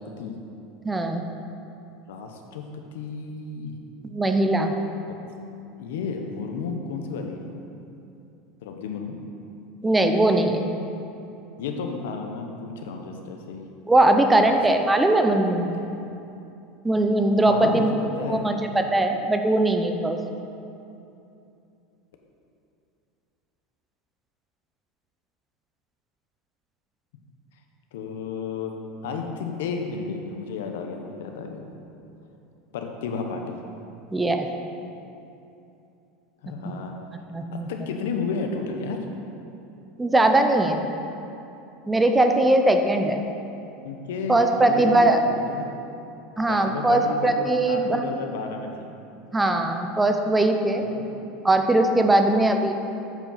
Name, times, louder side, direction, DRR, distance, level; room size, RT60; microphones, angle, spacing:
voice 1, 0.8-1.2 4.1-4.7 9.8-10.7 13.9-15.7 16.8-18.0 18.3-20.2 34.1-34.5 36.6-36.7 37.3-37.7 40.0-40.9 41.9-43.2 44.3-45.2 46.4-48.0 49.3-50.8 51.4-52.7, right 2 dB, 10° right, 5 dB, 0.5 m, -20 dB
voice 2, 2.1-3.8 5.8-7.5 8.6-9.2 11.6-13.7 14.1-14.6 15.8-16.0 17.4-17.9 18.2-18.6 27.9-28.7 29.0-31.6 32.7-33.6 36.4-37.0 37.5-39.0 43.8-45.7 46.5-48.9 50.8-51.1 52.1-52.4, left 5 dB, 85° left, 3 dB, 0.8 m, -32 dB
7.9 x 4.6 x 5.7 m, 2.8 s
supercardioid pair, 125°, 0 cm